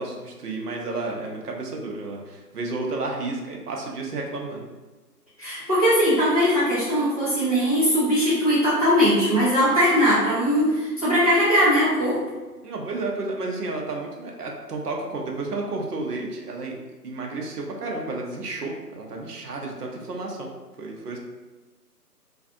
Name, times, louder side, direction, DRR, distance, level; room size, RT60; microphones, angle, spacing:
voice 1, 0.0-4.7 12.6-16.8 17.0-20.5 20.8-21.2, right 3 dB, 70° right, 0 dB, 0.7 m, -31 dB
voice 2, 5.4-12.2, equal, 25° right, -14 dB, 0.7 m, -20 dB
2.5 x 2.4 x 2.4 m, 1.2 s
figure-of-eight pair, 165°, 49 cm